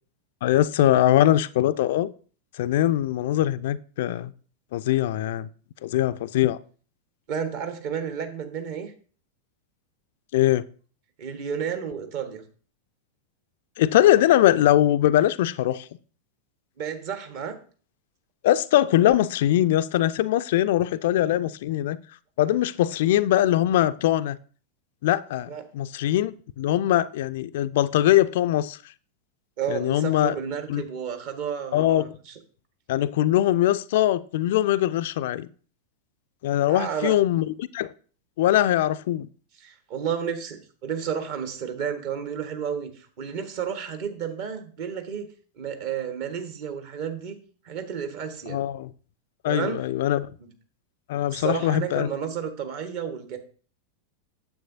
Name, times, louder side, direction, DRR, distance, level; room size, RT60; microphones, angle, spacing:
voice 1, 0.4-2.1 2.6-4.3 4.7-5.5 5.8-6.6 10.3-10.6 13.8-15.8 18.4-22.0 22.4-24.4 25.0-28.8 29.7-30.3 30.7-30.8 31.7-32.0 32.9-35.5 36.4-37.9 38.4-39.3 48.5-48.9 49.4-50.3 51.1-52.1, left 13 dB, 55° left, 0.3 m, -22 dB
voice 2, 7.3-8.9 11.2-12.4 16.8-17.6 25.5-25.6 29.6-32.4 36.7-37.1 39.6-45.3 45.6-47.4 47.6-48.6 49.4-49.8 50.4-50.5 51.3-53.4, right 7 dB, 45° right, 1.3 m, -31 dB
9.3 x 7.4 x 2.6 m
figure-of-eight pair, 90°, 0 cm